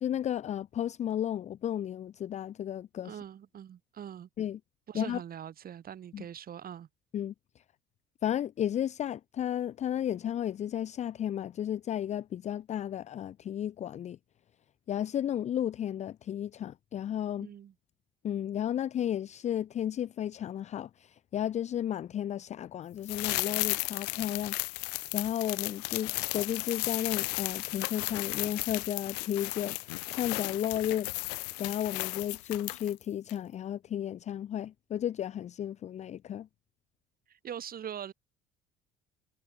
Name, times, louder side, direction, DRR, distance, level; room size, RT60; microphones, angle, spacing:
voice 1, 0.0-3.2 4.4-4.6 4.9-5.2 6.1-6.2 7.1-7.3 8.2-14.2 14.9-17.5 18.2-24.8 25.1-31.1 31.6-36.5, left 10 dB, 35° left, 0.4 m, -33 dB
voice 2, 3.0-4.3 4.9-6.9 17.4-17.7 37.3-38.1, right 9 dB, 50° right, 4.4 m, -42 dB
sound 1, 23.0-33.0 33.3-33.4, left 24 dB, 85° left, 1.2 m, -34 dB
hypercardioid pair, 75°, 20 cm